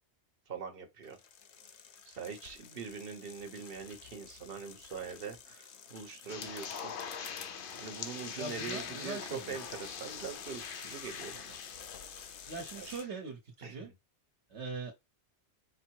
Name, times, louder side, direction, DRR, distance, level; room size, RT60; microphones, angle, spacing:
voice 1, 0.5-1.2 2.1-6.9 7.8-11.6 12.7-13.0 13.6-13.9, right 6 dB, 60° right, 1.1 m, -43 dB
sound 1, 1.0-13.0, left 7 dB, 90° left, 1.0 m, -51 dB
sound 2, 6.3-13.1, left 7 dB, 60° left, 0.7 m, -43 dB
voice 2, 8.4-9.6 12.5-13.9 14.5-14.9, right 3 dB, 90° right, 1.4 m, -41 dB
5.2 x 2.0 x 4.5 m
omnidirectional pair, 1.1 m